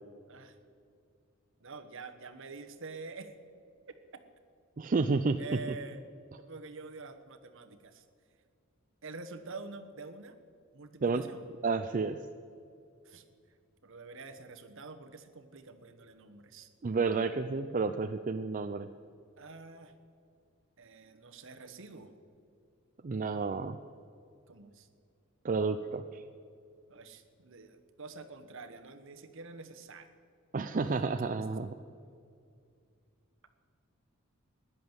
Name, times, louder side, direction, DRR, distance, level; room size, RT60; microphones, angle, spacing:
voice 1, 0.3-0.6 1.6-3.4 3.9-4.0 5.4-6.0 6.4-8.0 9.0-10.4 10.7-11.4 13.0-13.2 13.8-16.7 19.4-19.9 20.8-22.1 24.5-24.9 26.9-30.1 30.7-31.1, right 3 dB, 60° right, 8 dB, 1.1 m, -47 dB
voice 2, 4.8-5.4 11.0-11.2 11.6-12.2 16.8-18.9 23.0-23.8 25.4-26.2 30.5-31.7, right 4 dB, 40° right, 8 dB, 0.4 m, -30 dB
16.0 x 10.5 x 7.9 m, 2.3 s
head